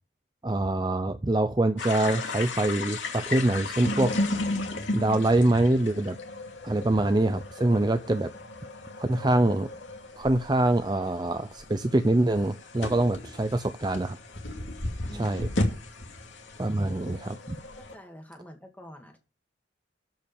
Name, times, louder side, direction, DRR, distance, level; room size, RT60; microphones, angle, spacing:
voice 1, 0.4-4.1 4.9-6.2 6.6-8.3 9.0-9.7 10.2-14.2 15.2-15.5 16.6-17.6, right 2 dB, 20° right, 9 dB, 0.5 m, -24 dB
sound 1, 1.8-18.0, left 2 dB, 85° left, 2.6 m, -35 dB
voice 2, 15.1-15.4 17.8-19.2, equal, 10° left, 3 dB, 2.2 m, -46 dB
13.0 x 5.3 x 7.0 m, 0.34 s
head